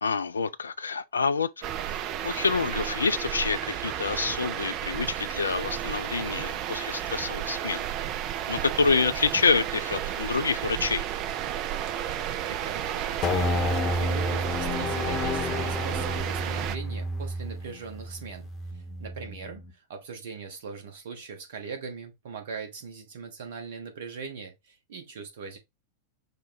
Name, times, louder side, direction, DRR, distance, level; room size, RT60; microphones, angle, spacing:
voice 1, 0.0-1.5 1.8-7.8 8.5-11.1, left 5 dB, 75° left, 0.3 m, -27 dB
sound 1, 1.6-16.8, right 11 dB, 40° right, 0.4 m, -32 dB
voice 2, 12.5-18.5 19.0-19.6 19.9-25.6, right 5 dB, 55° right, 1.2 m, -40 dB
sound 2, 13.2-19.7, left 1 dB, 30° left, 0.8 m, -30 dB
5.5 x 2.2 x 4.2 m
figure-of-eight pair, 90°, 0 cm